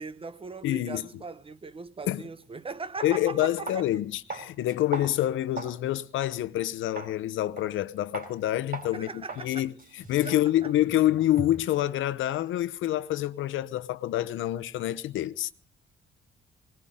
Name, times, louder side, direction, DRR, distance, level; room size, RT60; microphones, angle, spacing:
voice 1, 0.0-3.9 8.9-9.7 10.2-10.7, right 4 dB, 30° right, 0.7 m, -39 dB
voice 2, 0.6-1.1 2.1-2.2 3.0-9.7 10.1-15.5, left 13 dB, 80° left, 0.8 m, -27 dB
sound 1, 2.4-2.5 3.0-3.2 3.7-3.9 4.3-5.8 6.2-6.3 7.0-7.2 7.6-7.8 8.1-8.3 8.7-8.9 9.3-9.5 9.8-11.7, right 3 dB, 50° right, 4.4 m, -39 dB
20.0 x 19.5 x 3.7 m
cardioid pair, 90°, 20 cm